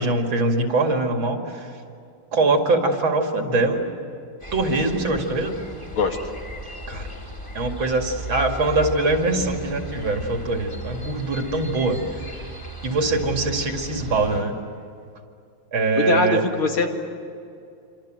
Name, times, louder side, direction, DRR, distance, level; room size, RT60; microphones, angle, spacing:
voice 1, 0.0-1.7 2.3-3.8 4.5-5.6 6.9-7.1 7.5-12.0 12.8-14.5 15.7-16.4, right 2 dB, 70° right, 3 dB, 3.1 m, -22 dB
sound 1, 4.4-14.4, equal, 15° left, 3.3 m, -36 dB
voice 2, 16.1-16.9, left 4 dB, 80° left, 3 dB, 3.0 m, -21 dB
27.0 x 26.0 x 7.8 m, 2.5 s
omnidirectional pair, 2.3 m